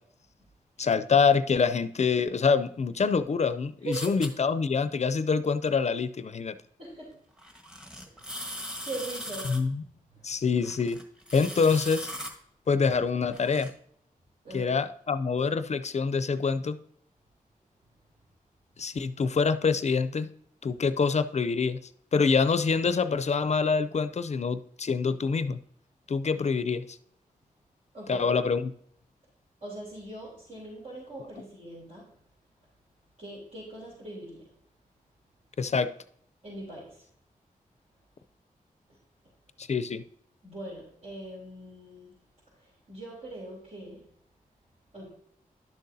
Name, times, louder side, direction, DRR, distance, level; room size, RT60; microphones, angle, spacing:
voice 1, 0.8-6.6 9.4-9.8 10.2-11.0 11.3-12.1 12.7-13.7 14.5-16.8 18.8-20.3 20.6-21.8 22.1-25.6 26.1-27.0 28.1-28.7 35.6-35.9 39.6-40.0, left 5 dB, 50° left, 12 dB, 0.5 m, -26 dB
voice 2, 3.8-4.2 6.8-7.2 8.1-9.6 10.1-10.4 14.4-14.8 27.9-28.3 29.6-32.1 33.2-34.5 36.4-37.0 40.4-42.1 42.6-44.0 44.9-45.1, right 2 dB, 60° right, -7 dB, 3.5 m, -41 dB
sound 1, 3.9-4.3 7.4-9.6 10.6-12.3 12.9-13.7, equal, 5° right, 1.4 m, -39 dB
11.5 x 6.5 x 2.7 m, 0.66 s
cardioid pair, 65°, 15 cm